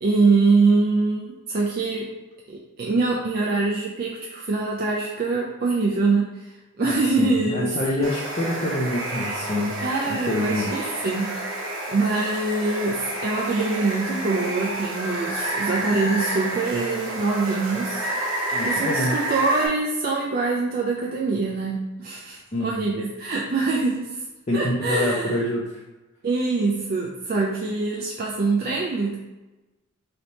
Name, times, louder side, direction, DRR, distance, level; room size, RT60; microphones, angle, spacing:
voice 1, 0.0-2.1 2.5-6.5 6.8-7.7 9.8-18.0 18.6-24.1 24.5-25.4 26.2-29.2, right 3 dB, 45° right, -3 dB, 0.4 m, -24 dB
voice 2, 6.8-9.8 10.1-10.9 18.5-19.2 22.5-22.9 24.5-25.6, left 1 dB, 30° left, -6 dB, 0.5 m, -26 dB
Water, 8.0-19.7, right 1 dB, 65° right, 0.9 m, -29 dB
3.3 x 2.8 x 4.0 m, 1.1 s
head